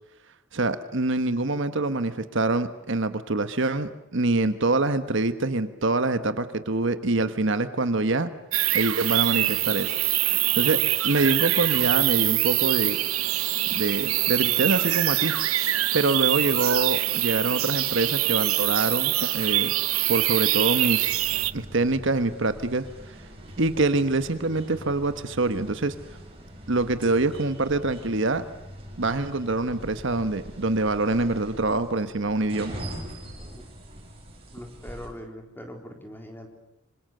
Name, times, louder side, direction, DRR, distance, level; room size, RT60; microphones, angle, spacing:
voice 1, 0.5-8.3 8.7-10.0 10.3-10.8 11.0-13.0 13.7-15.3 15.9-19.7 20.1-21.2 21.5-22.9 23.6-25.9 26.7-28.4 29.0-32.8, right 2 dB, 60° right, 11 dB, 1.3 m, -25 dB
sound 1, 8.5-21.5, right 15 dB, 90° right, 0.9 m, -24 dB
sound 2, 21.0-35.1, equal, 30° right, 6.8 m, -42 dB
voice 2, 34.5-36.5, equal, 10° left, 3 dB, 4.0 m, -41 dB
26.0 x 26.0 x 6.8 m, 0.91 s
head